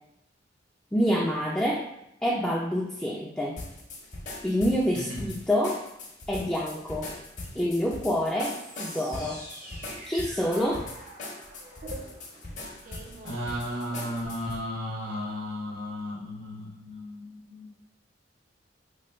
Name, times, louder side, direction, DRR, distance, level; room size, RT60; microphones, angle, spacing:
voice 1, 0.9-1.9 2.2-3.6 4.4-5.8 6.3-7.1 7.5-9.4 10.1-10.9, equal, 5° left, -4 dB, 0.3 m, -27 dB
sound 1, 3.6-14.6, left 2 dB, 40° left, 0.7 m, -41 dB
sound 2, 8.4-14.1, right 2 dB, 50° right, 0.5 m, -47 dB
voice 2, 13.2-17.7, left 1 dB, 90° right, -5 dB, 1.3 m, -35 dB
3.0 x 2.2 x 4.2 m, 0.82 s
head